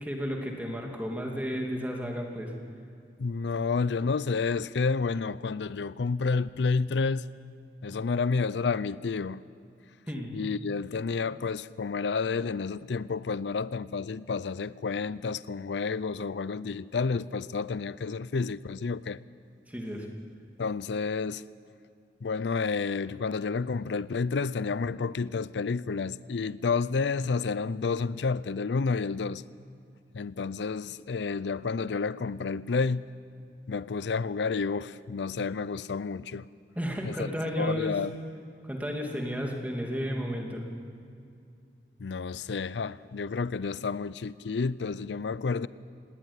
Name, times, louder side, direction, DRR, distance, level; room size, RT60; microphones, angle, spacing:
voice 1, 0.0-2.5 10.1-10.3 19.7-20.1 36.8-38.0 38.7-40.6, equal, 10° right, 2.6 m, -33 dB
voice 2, 3.2-7.3 7.8-9.4 10.3-19.2 20.6-21.4 22.2-29.4 30.1-33.0 33.7-36.5 37.0-37.3 37.6-38.1 42.0-45.7, left 4 dB, 90° left, 0.5 m, -30 dB
18.5 x 18.0 x 9.7 m
head